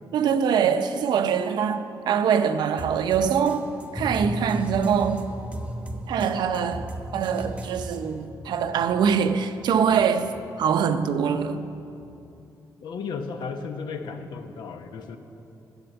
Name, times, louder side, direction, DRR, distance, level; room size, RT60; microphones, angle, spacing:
voice 1, 0.1-3.7 3.9-5.3 6.1-6.9 7.1-11.6, right 7 dB, 85° right, 0.6 m, -23 dB
sound 1, 2.8-8.3, right 1 dB, 15° right, 0.9 m, -39 dB
sound 2, 3.9-12.5, equal, 5° left, 0.4 m, -38 dB
voice 2, 12.8-15.2, left 5 dB, 90° left, 1.0 m, -34 dB
12.0 x 8.0 x 8.0 m
wide cardioid pair, 170°, 7 cm